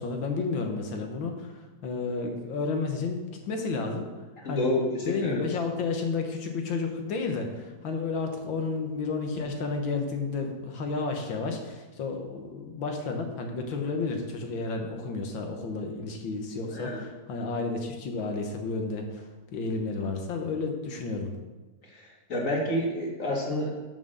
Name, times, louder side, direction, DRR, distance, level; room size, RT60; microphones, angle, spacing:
voice 1, 0.0-4.1 4.4-4.7 5.1-21.3, left 4 dB, 70° left, 4 dB, 1.9 m, -31 dB
voice 2, 4.4-5.4 16.7-17.0 21.9-23.7, left 1 dB, 40° left, -2 dB, 2.3 m, -29 dB
7.5 x 6.2 x 6.5 m, 1.2 s
omnidirectional pair, 2.2 m